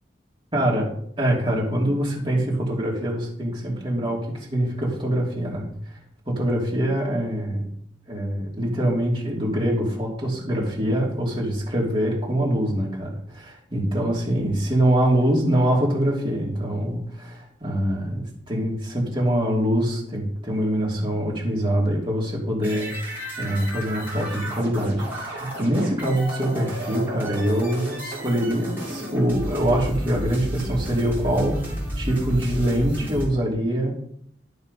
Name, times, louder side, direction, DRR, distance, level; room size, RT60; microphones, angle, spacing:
voice 1, 0.5-0.8 1.2-5.9 6.3-7.7 8.1-33.9, right 1 dB, 30° right, -3 dB, 3.0 m, -24 dB
sound 1, 22.6-33.3, equal, 10° right, 3.8 m, -32 dB
11.5 x 5.4 x 5.5 m, 0.66 s
head